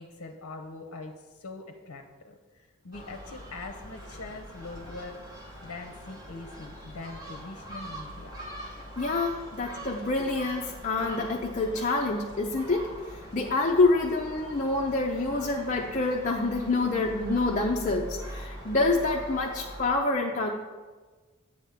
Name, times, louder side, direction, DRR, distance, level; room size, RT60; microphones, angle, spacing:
voice 1, 0.0-5.2 5.6-8.3 9.3-9.5, left 3 dB, 75° left, 4 dB, 0.7 m, -43 dB
Gull seagull, 2.9-19.9, equal, 15° right, 1.1 m, -43 dB
voice 2, 9.0-12.9 13.1-20.5, left 3 dB, 35° left, -1 dB, 0.5 m, -27 dB
8.4 x 3.5 x 6.5 m, 1.3 s
head